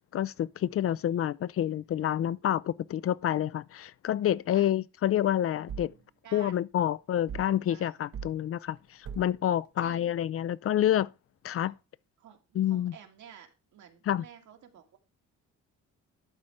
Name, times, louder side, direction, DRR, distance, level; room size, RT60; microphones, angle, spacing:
voice 1, 0.1-5.9 6.3-11.1 11.4-11.7 12.5-12.9 14.1-14.2, left 11 dB, 50° left, 0.4 m, -28 dB
voice 2, 0.9-1.3 4.5-4.7 6.2-6.6 7.7-8.0 9.8-10.1 11.6-11.7 12.2-15.0, right 9 dB, 75° right, 1.9 m, -52 dB
sound 1, 5.7-6.0 7.3-7.6 8.1-8.4 9.0-9.4, right 6 dB, 50° right, 0.8 m, -40 dB
11.5 x 4.4 x 4.9 m
cardioid pair, 90°, 30 cm